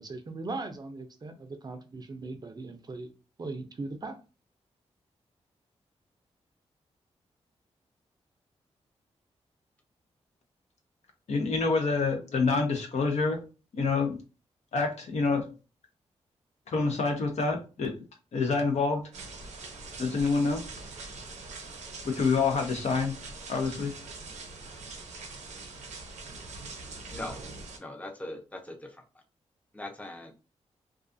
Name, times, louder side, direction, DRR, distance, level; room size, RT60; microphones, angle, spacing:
voice 1, 0.0-3.1 3.4-4.2, right 3 dB, 35° right, 0.4 m, -39 dB
voice 2, 11.3-13.4 13.7-14.2 14.7-15.4 16.7-17.9 18.3-19.0 20.0-20.6 22.0-23.1 23.5-23.9, left 4 dB, 70° left, 0.7 m, -27 dB
sound 1, 19.1-27.8, right 3 dB, 85° right, 0.6 m, -43 dB
voice 3, 27.8-29.0 29.7-30.3, left 1 dB, 10° left, 0.6 m, -40 dB
2.4 x 2.3 x 2.5 m
cardioid pair, 75°, 12 cm